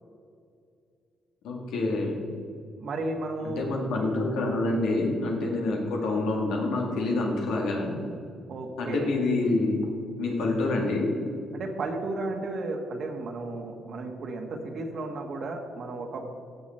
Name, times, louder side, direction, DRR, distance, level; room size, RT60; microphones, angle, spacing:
voice 1, 1.4-2.2 3.4-7.9 8.8-9.9 10.2-11.1, left 2 dB, 85° left, 0 dB, 2.0 m, -27 dB
voice 2, 2.8-3.6 5.4-5.6 8.5-9.1 11.5-16.3, right 2 dB, 60° right, 3 dB, 1.5 m, -34 dB
16.0 x 6.1 x 4.4 m, 2.5 s
cardioid pair, 90°, 0 cm